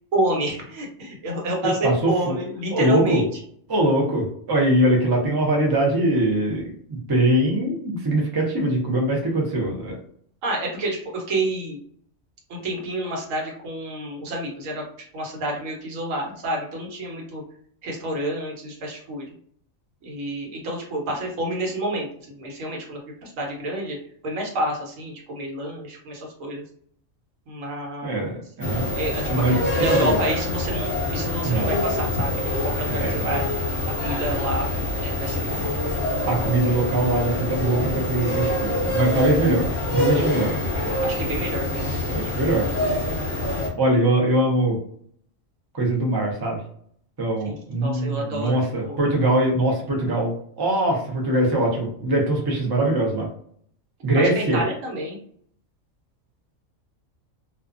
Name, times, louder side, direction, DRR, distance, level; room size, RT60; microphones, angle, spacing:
voice 1, 0.1-3.4 10.4-11.8 12.5-17.4 17.8-19.3 20.0-24.0 24.2-26.6 27.5-28.3 28.9-33.4 33.9-34.7 34.9-35.7 41.0-42.0 47.4-49.0 54.1-55.2, right 1 dB, 80° right, 0 dB, 1.2 m, -29 dB
voice 2, 1.8-2.3 2.7-3.2 3.7-10.0 28.0-28.8 29.3-29.6 29.9-30.1 31.4-31.7 33.0-33.4 36.3-40.5 42.1-42.7 43.8-44.8 45.7-46.6 47.2-53.3 54.0-54.6, right 1 dB, 35° right, 0 dB, 0.3 m, -22 dB
sound 1, 28.6-43.7, left 1 dB, 45° left, 0.8 m, -25 dB
2.5 x 2.2 x 2.4 m, 0.62 s
omnidirectional pair, 1.3 m